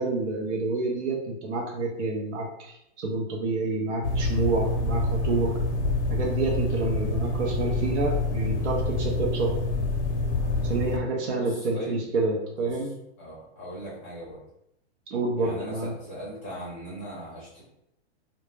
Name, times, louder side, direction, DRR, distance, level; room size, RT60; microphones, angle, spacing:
voice 1, 0.0-5.6 6.1-9.6 10.6-12.9 15.1-15.9, right 3 dB, 80° right, 0 dB, 0.6 m, -28 dB
sound 1, 4.0-11.0, left 2 dB, 75° left, 0.6 m, -27 dB
voice 2, 10.8-12.0 12.6-12.9 13.2-14.4 15.4-17.6, equal, 10° left, -9 dB, 0.5 m, -39 dB
2.1 x 2.0 x 3.1 m, 0.80 s
hypercardioid pair, 180°, 34 cm